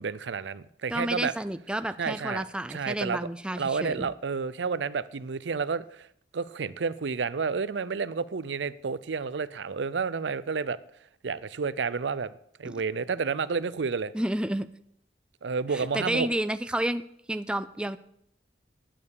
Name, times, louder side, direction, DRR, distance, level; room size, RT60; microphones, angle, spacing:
voice 1, 0.0-1.3 2.0-2.4 2.7-3.2 3.6-6.1 6.3-10.8 11.2-12.3 12.6-14.1 15.4-16.3, right 5 dB, 80° right, 0.6 m, -30 dB
voice 2, 0.9-4.1 12.6-12.8 14.1-14.7 15.7-17.0 17.3-18.0, right 1 dB, 5° right, 0.4 m, -30 dB
11.0 x 8.9 x 6.6 m
head